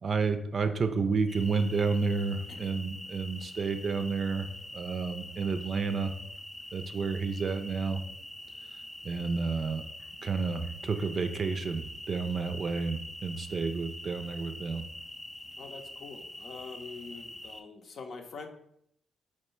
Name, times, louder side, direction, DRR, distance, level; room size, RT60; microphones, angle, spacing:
voice 1, 0.0-4.5 4.7-6.1 6.7-8.0 9.0-9.8 10.2-14.8, right 4 dB, 50° right, 7 dB, 0.4 m, -30 dB
sound 1, 1.3-17.6, left 1 dB, 5° left, 0.5 m, -45 dB
voice 2, 15.6-18.5, left 4 dB, 60° left, 4 dB, 0.6 m, -44 dB
4.5 x 2.2 x 4.4 m, 0.72 s
hypercardioid pair, 45°, 0 cm